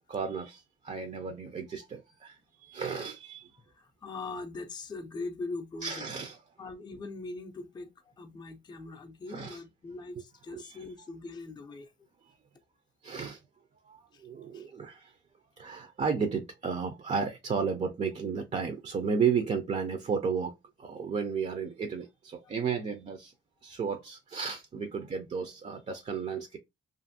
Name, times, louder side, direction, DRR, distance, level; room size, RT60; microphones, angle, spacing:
voice 1, 0.1-3.6 5.8-6.4 8.7-8.8 9.3-9.6 10.5-10.8 12.2-12.3 13.0-13.4 13.8-15.2 15.6-23.3 23.6-26.6, right 6 dB, 35° right, 0.5 m, -33 dB
voice 2, 3.6-6.1 6.6-11.9 14.1-14.3 14.5-14.7 22.4-22.5, left 3 dB, 20° left, 0.5 m, -41 dB
2.6 x 2.5 x 2.5 m
cardioid pair, 90°, 20 cm